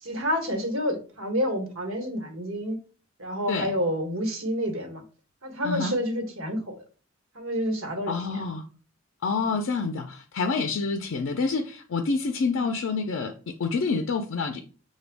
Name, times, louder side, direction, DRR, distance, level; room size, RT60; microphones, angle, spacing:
voice 1, 0.0-2.8 3.2-5.0 5.4-6.8 7.3-8.4 9.4-9.5 12.6-12.7, equal, 80° right, 1.1 m, -29 dB
voice 2, 5.6-6.0 8.1-8.6 9.2-14.6, left 4 dB, 75° left, 0.4 m, -28 dB
5.9 x 2.2 x 3.4 m
head